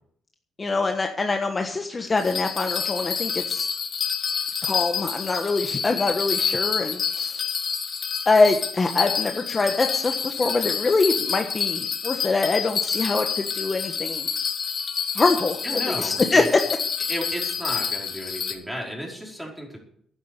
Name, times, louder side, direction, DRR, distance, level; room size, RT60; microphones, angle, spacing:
voice 1, 0.6-3.7 4.6-7.5 8.2-14.3 15.1-16.4, left 3 dB, 30° left, 4 dB, 1.3 m, -24 dB
Bell, 2.2-18.5, left 6 dB, 50° left, 2.5 m, -28 dB
voice 2, 15.6-16.5 17.1-19.8, equal, 5° right, -1 dB, 4.9 m, -33 dB
12.0 x 9.6 x 6.8 m, 0.65 s
cardioid pair, 90°, 0 cm